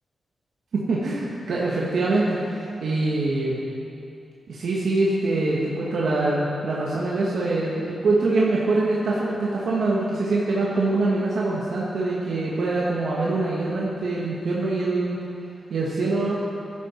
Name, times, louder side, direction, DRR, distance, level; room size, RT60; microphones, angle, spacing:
voice 1, 0.7-3.6 4.5-15.2 15.7-16.4, right 2 dB, 75° right, -5 dB, 1.7 m, -24 dB
14.5 x 11.5 x 4.5 m, 2.6 s
wide cardioid pair, 105°, 0 cm